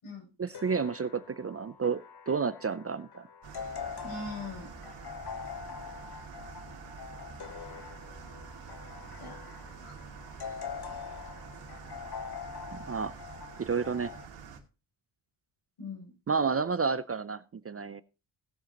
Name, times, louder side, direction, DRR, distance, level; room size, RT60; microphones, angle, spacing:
voice 1, 0.4-3.3 12.9-13.1 13.6-14.1 16.3-18.0, right 5 dB, 30° right, 15 dB, 0.4 m, -31 dB
sound 1, 0.5-14.3, left 7 dB, 50° left, 1.0 m, -44 dB
sound 2, 3.4-14.6, right 6 dB, 85° right, 2.3 m, -47 dB
voice 2, 4.0-4.7 9.2-10.0 15.8-16.1, left 2 dB, 85° left, -1 dB, 7.4 m, -42 dB
18.0 x 7.7 x 2.9 m, 0.31 s
wide cardioid pair, 125°, 50 cm